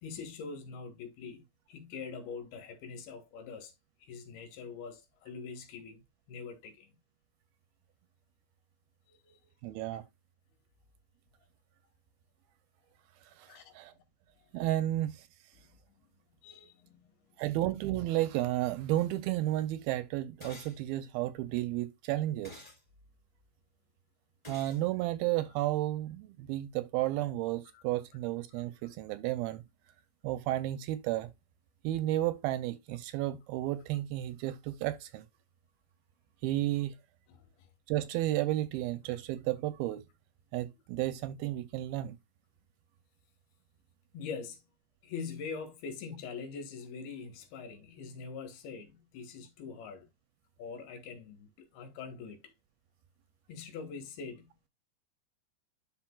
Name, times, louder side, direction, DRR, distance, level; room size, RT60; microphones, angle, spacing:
voice 1, 0.0-3.7 4.0-6.0 6.3-7.0 9.1-9.4 13.5-14.0 15.6-15.7 16.4-17.1 27.7-27.8 37.3-37.7 44.1-44.6 45.0-50.1 50.6-52.5 53.5-54.5, left 5 dB, 75° left, 3.2 m, -44 dB
voice 2, 9.6-10.0 13.4-13.9 14.5-15.3 17.4-22.6 24.5-29.6 30.2-31.3 31.8-35.3 36.4-36.9 37.9-40.0 40.5-42.2, right 15 dB, 80° right, 2.3 m, -32 dB
sound 1, 20.4-20.8 22.4-22.8 24.4-24.8, left 2 dB, 10° left, 2.5 m, -48 dB
11.5 x 4.3 x 2.3 m
omnidirectional pair, 4.6 m